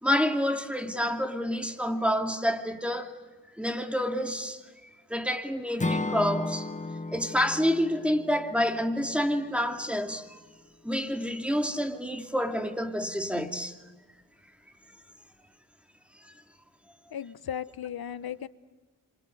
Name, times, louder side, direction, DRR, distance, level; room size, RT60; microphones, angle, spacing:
voice 1, 0.0-3.1 3.5-4.6 5.1-6.7 7.1-10.4 10.8-13.8, equal, 5° right, 2.7 m, -28 dB
Acoustic guitar / Strum, 5.8-9.9, left 2 dB, 20° left, 1.0 m, -34 dB
voice 2, 17.1-18.5, left 9 dB, 65° left, 1.1 m, -36 dB
27.5 x 26.5 x 7.9 m
cardioid pair, 50°, 39 cm